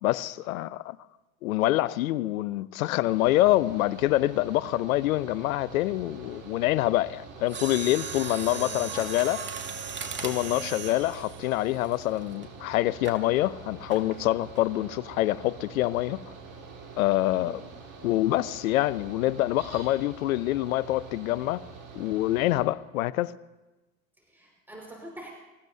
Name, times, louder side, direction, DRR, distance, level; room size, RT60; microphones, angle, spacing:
voice 1, 0.0-1.0 1.4-9.4 10.2-16.2 17.0-17.6 18.0-21.7 21.9-23.4, left 16 dB, 80° left, 0.7 m, -26 dB
Mechanical fan, 3.0-22.6, right 4 dB, 45° right, 3.7 m, -46 dB
Mechanisms, 7.5-12.4 13.0-13.3 13.9-14.2 14.6-14.7, right 5 dB, 25° right, 2.1 m, -37 dB
voice 2, 8.5-9.1 10.4-10.7 17.3-17.6 24.2-25.3, right 1 dB, 5° right, 5.0 m, -45 dB
26.0 x 15.0 x 2.7 m
hypercardioid pair, 95°, 41 cm